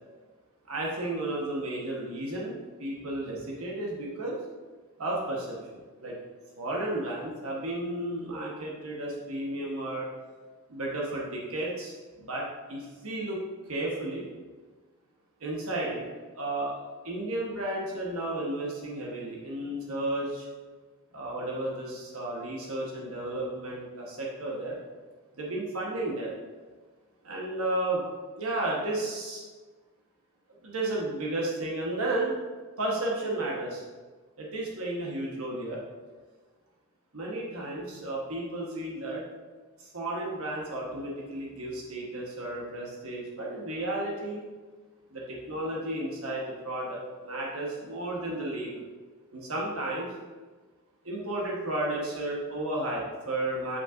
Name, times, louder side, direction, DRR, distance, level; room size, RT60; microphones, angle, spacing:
voice 1, 0.7-4.4 5.0-6.2 6.6-10.1 10.7-13.4 13.7-14.3 15.4-16.0 16.3-16.7 17.0-20.5 21.1-24.8 25.4-26.3 27.2-28.0 28.4-29.5 30.6-32.3 32.8-33.8 34.4-35.8 37.1-39.2 39.8-44.4 45.1-48.9 49.3-50.1 51.0-53.8, right 1 dB, 75° right, -3 dB, 1.2 m, -33 dB
8.2 x 5.5 x 2.5 m, 1.4 s
head